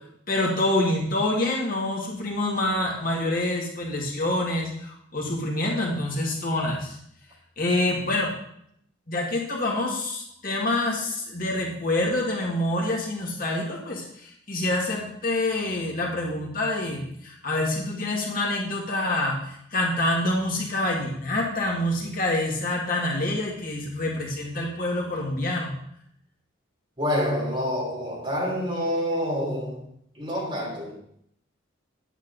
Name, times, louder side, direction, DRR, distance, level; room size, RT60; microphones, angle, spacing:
voice 1, 0.3-7.0 7.6-8.3 9.1-25.8, left 1 dB, 45° left, -2 dB, 1.8 m, -26 dB
voice 2, 27.0-29.8 30.1-30.9, equal, 25° right, -3 dB, 3.3 m, -27 dB
10.0 x 8.4 x 3.9 m, 0.71 s
head